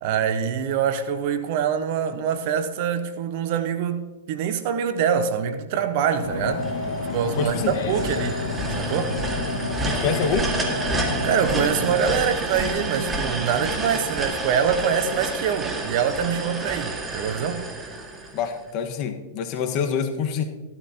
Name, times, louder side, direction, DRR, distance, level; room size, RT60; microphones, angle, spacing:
voice 1, 0.0-6.6 7.1-8.4 8.7-9.2 11.2-17.6, right 7 dB, 55° right, 1.1 m, -24 dB
sound 1, 6.2-12.0, left 3 dB, 60° left, 2.1 m, -29 dB
sound 2, 6.6-18.7, right 2 dB, 20° right, 2.0 m, -30 dB
voice 2, 7.4-7.7 9.8-10.5 18.3-20.4, left 7 dB, 45° left, 1.5 m, -26 dB
15.0 x 12.5 x 2.9 m
hypercardioid pair, 105°, 0 cm